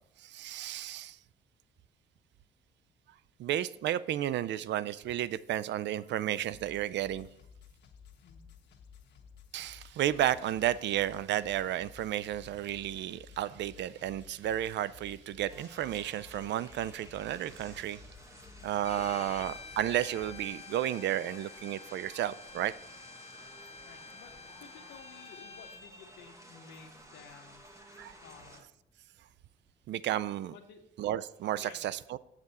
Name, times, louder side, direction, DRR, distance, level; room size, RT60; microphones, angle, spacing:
voice 1, 0.2-1.2 3.4-7.3 9.5-18.0 18.6-22.7 28.0-28.1 29.9-30.5 31.0-32.2, right 12 dB, 65° right, 0.4 m, -32 dB
sound 1, 6.5-20.5, left 7 dB, 60° left, 1.2 m, -55 dB
sound 2, 15.5-28.6, right 1 dB, 15° right, 1.4 m, -54 dB
Bowed string instrument, 18.8-25.8, left 6 dB, 30° left, 0.4 m, -49 dB
voice 2, 23.8-27.6 28.2-28.7 30.5-30.9 31.5-31.8, left 6 dB, 80° left, 0.9 m, -54 dB
7.7 x 7.4 x 4.2 m
cardioid pair, 90°, 20 cm